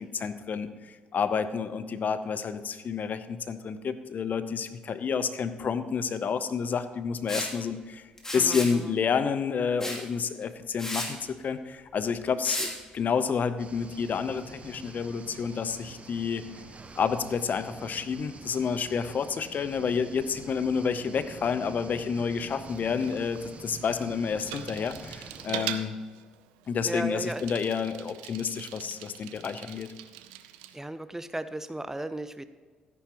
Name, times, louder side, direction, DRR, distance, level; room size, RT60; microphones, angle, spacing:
voice 1, 0.0-8.1 8.3-16.4 17.0-25.9 26.7-29.9, left 6 dB, 50° left, 12 dB, 0.7 m, -29 dB
Liquid, 7.3-7.5 8.2-8.7 9.8-10.0 10.4-10.5 10.8-11.1 12.4-12.7, left 1 dB, 15° left, 2.8 m, -33 dB
voice 2, 8.3-9.0 26.8-27.4 30.7-32.5, right 1 dB, 10° right, 12 dB, 0.6 m, -35 dB
sound 1, 13.6-25.5, right 4 dB, 35° right, 1.0 m, -46 dB
Bicycle, 22.4-30.8, right 12 dB, 80° right, 0.5 m, -42 dB
13.5 x 10.0 x 3.0 m, 1.4 s
hypercardioid pair, 45°, 4 cm